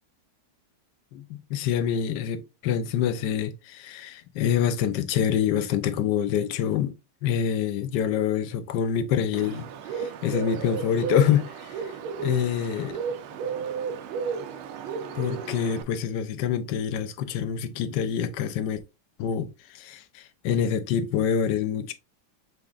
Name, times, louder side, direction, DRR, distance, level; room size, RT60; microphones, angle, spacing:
voice 1, 1.1-6.9 7.2-13.0 15.1-18.8 19.2-21.9, left 8 dB, 70° left, 1.1 m, -26 dB
Bird, 9.3-15.8, right 6 dB, 90° right, 1.6 m, -33 dB
6.1 x 3.4 x 2.4 m
omnidirectional pair, 2.2 m